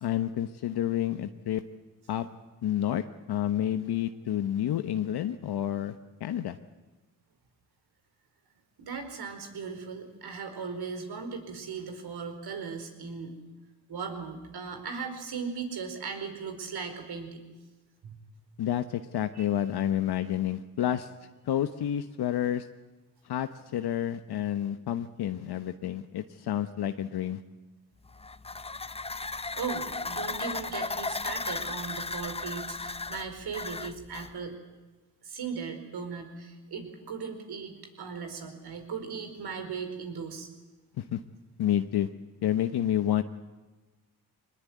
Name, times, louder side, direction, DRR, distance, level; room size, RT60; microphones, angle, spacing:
voice 1, 0.0-1.6 2.1-2.3 2.6-6.6 18.6-21.1 21.4-22.7 23.2-27.4 41.0-41.2 41.6-42.1 42.4-43.2, left 11 dB, 65° left, 9 dB, 1.1 m, -29 dB
voice 2, 8.8-13.3 13.9-17.4 18.0-18.2 19.3-19.5 29.1-34.6 35.2-40.5, right 5 dB, 65° right, 6 dB, 4.7 m, -38 dB
sound 1, 28.1-34.3, left 3 dB, 15° left, 0.8 m, -35 dB
21.0 x 20.5 x 9.4 m, 1.2 s
supercardioid pair, 65°, 41 cm